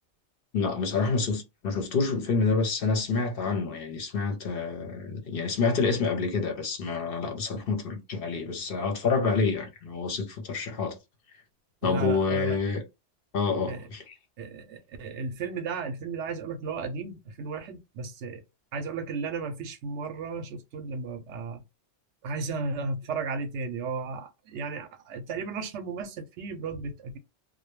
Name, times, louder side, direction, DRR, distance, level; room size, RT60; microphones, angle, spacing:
voice 1, 0.5-10.9 11.8-12.8 13.3-14.1, left 4 dB, 60° left, 0.8 m, -28 dB
voice 2, 11.8-12.6 13.7-13.9 14.4-18.4 18.7-21.6 22.2-27.2, right 4 dB, 85° right, 0.9 m, -34 dB
2.2 x 2.1 x 3.0 m
omnidirectional pair, 1.2 m